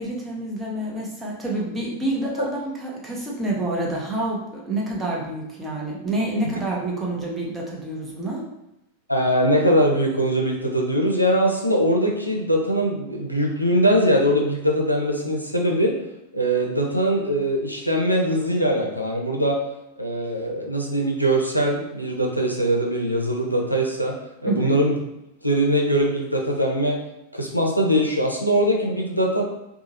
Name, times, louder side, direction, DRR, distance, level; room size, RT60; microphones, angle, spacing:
voice 1, 0.0-8.4 24.5-24.7, right 2 dB, 15° right, -3 dB, 0.7 m, -28 dB
voice 2, 9.1-16.0 16.3-19.6 20.0-24.2 24.4-25.0 25.4-27.0 27.3-29.4, equal, 90° left, 0 dB, 0.4 m, -21 dB
2.8 x 2.3 x 2.7 m, 0.89 s
figure-of-eight pair, 90°, 0 cm